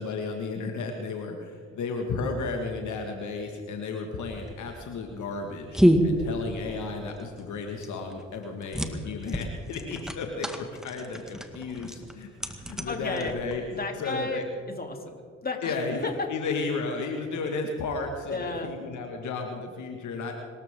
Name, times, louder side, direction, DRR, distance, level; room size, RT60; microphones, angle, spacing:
voice 1, 0.0-13.6 14.0-14.4 15.6-20.3, left 4 dB, 65° left, 3 dB, 2.0 m, -33 dB
sound 1, 4.3-13.8, equal, ahead, 1.9 m, -29 dB
voice 2, 12.9-13.3 13.7-16.3 18.3-18.7, left 3 dB, 30° left, 3 dB, 3.3 m, -33 dB
25.5 x 13.5 x 3.8 m, 2.1 s
hypercardioid pair, 50°, 33 cm